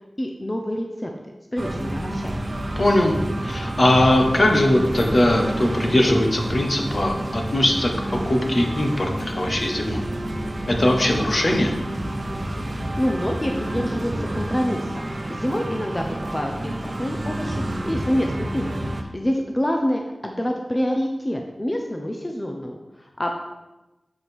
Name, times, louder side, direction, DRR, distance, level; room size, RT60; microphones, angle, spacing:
voice 1, 0.2-1.1 1.5-2.4 12.8-18.7 18.9-23.3, equal, 20° left, 2 dB, 0.8 m, -27 dB
sound 1, 1.6-19.0, right 1 dB, 45° right, 0.9 m, -29 dB
voice 2, 2.8-3.1 3.4-10.0 10.7-11.7, left 1 dB, 50° left, 2 dB, 1.3 m, -20 dB
7.4 x 5.1 x 6.1 m, 1.1 s
wide cardioid pair, 65°, 0 cm